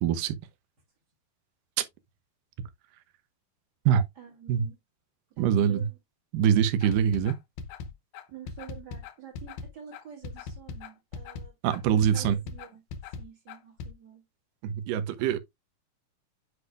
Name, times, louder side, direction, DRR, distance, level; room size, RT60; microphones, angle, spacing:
voice 1, 0.0-0.4 3.9-4.0 4.5-4.7 5.4-5.9 6.3-7.4 11.6-12.4 14.6-15.4, right 8 dB, 75° right, 2.3 m, -24 dB
voice 2, 4.2-4.8 5.3-6.0 8.3-12.8 13.2-14.2, right 9 dB, 35° right, 1.9 m, -48 dB
sound 1, 6.8-13.9, left 5 dB, 80° left, 2.7 m, -40 dB
8.1 x 4.9 x 2.4 m
omnidirectional pair, 4.3 m